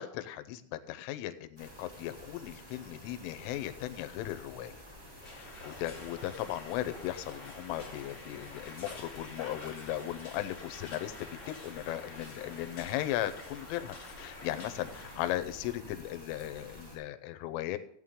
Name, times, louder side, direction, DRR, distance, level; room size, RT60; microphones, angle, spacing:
voice 1, 0.0-4.8 5.3-17.8, left 13 dB, 85° left, 10 dB, 3.3 m, -37 dB
sound 1, 1.6-17.0, equal, 15° right, 3.1 m, -51 dB
sound 2, 5.2-15.3, left 2 dB, 60° left, 0.7 m, -49 dB
15.0 x 9.2 x 3.7 m, 0.68 s
omnidirectional pair, 5.7 m